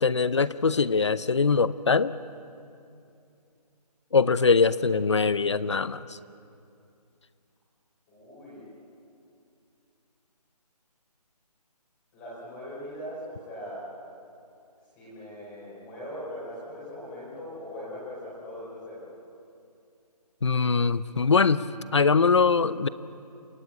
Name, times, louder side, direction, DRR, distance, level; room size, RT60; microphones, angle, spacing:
voice 1, 0.0-2.1 4.1-6.0 20.4-21.6 21.9-22.9, left 4 dB, 45° left, 17 dB, 0.7 m, -22 dB
voice 2, 8.1-8.7 12.1-13.9 14.9-19.1, equal, 10° left, -9 dB, 4.5 m, -40 dB
28.0 x 17.0 x 8.6 m, 2.6 s
hypercardioid pair, 175°, 21 cm